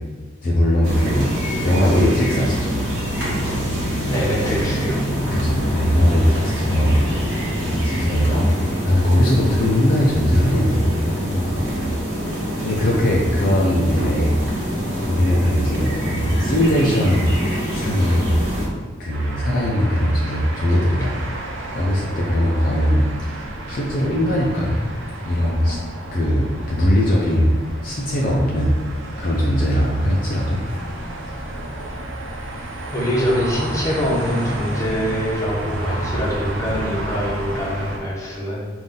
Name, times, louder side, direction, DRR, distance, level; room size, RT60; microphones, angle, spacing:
voice 1, 0.4-1.3 1.6-2.8 5.3-7.0 7.7-8.5 8.8-11.9 12.6-14.4 14.6-18.3 19.0-21.1 21.5-24.8 25.2-25.8 26.1-28.7 29.2-30.6, equal, 45° left, -4 dB, 0.5 m, -20 dB
sound 1, 0.8-18.7, equal, 65° right, 1.4 m, -25 dB
voice 2, 4.0-5.0 32.9-38.7, equal, 15° left, -6 dB, 1.0 m, -24 dB
sound 2, 19.1-38.0, right 1 dB, 80° right, 0.8 m, -31 dB
5.5 x 2.6 x 3.8 m, 1.4 s
head